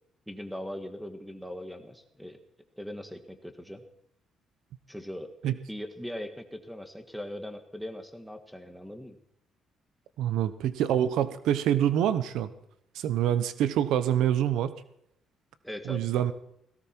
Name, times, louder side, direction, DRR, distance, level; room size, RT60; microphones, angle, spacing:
voice 1, 0.3-2.4 2.8-3.8 4.9-9.2 15.6-16.1, equal, ahead, 6 dB, 1.7 m, -40 dB
voice 2, 10.2-12.5 12.9-14.7 15.9-16.3, right 10 dB, 85° right, 13 dB, 0.9 m, -26 dB
17.5 x 17.0 x 4.6 m, 0.75 s
cardioid pair, 130°, 0 cm